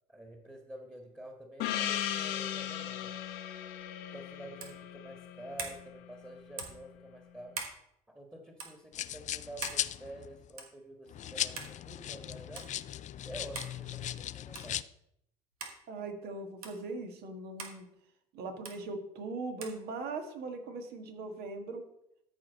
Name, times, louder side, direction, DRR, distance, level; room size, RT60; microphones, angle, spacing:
voice 1, 0.1-3.2 4.1-7.5 8.1-12.7 13.2-14.9, right 1 dB, 10° right, 2 dB, 1.8 m, -48 dB
Gong, 1.6-6.4, left 11 dB, 70° left, 0.9 m, -37 dB
sound 1, 4.6-4.8 5.6-5.8 6.6-6.8 7.5-7.8 8.6-8.7 9.6-9.8 10.6-10.8 11.6-11.7 12.6-12.7 13.5-13.8 14.5-14.8 15.6-15.8 16.6-16.8 17.6-17.8 18.6-18.8 19.6-19.8, right 4 dB, 90° right, 1.3 m, -41 dB
sound 2, 8.9-10.5 11.1-14.8, left 11 dB, 40° left, 0.4 m, -38 dB
voice 2, 15.9-17.9 18.3-21.9, right 3 dB, 60° right, 5 dB, 1.7 m, -40 dB
13.5 x 4.7 x 4.1 m, 0.77 s
hypercardioid pair, 60°, 18 cm